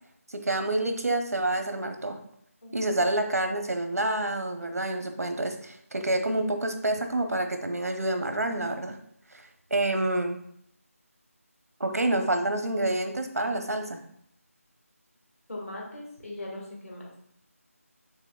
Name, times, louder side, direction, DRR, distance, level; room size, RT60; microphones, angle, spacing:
voice 1, 0.3-2.2 2.7-9.0 9.3-10.4 11.8-14.0, right 2 dB, 80° right, 6 dB, 0.7 m, -28 dB
voice 2, 2.6-2.9 15.5-17.0, left 1 dB, 65° left, -2 dB, 1.7 m, -39 dB
5.5 x 3.5 x 2.3 m, 0.70 s
figure-of-eight pair, 165°, 8 cm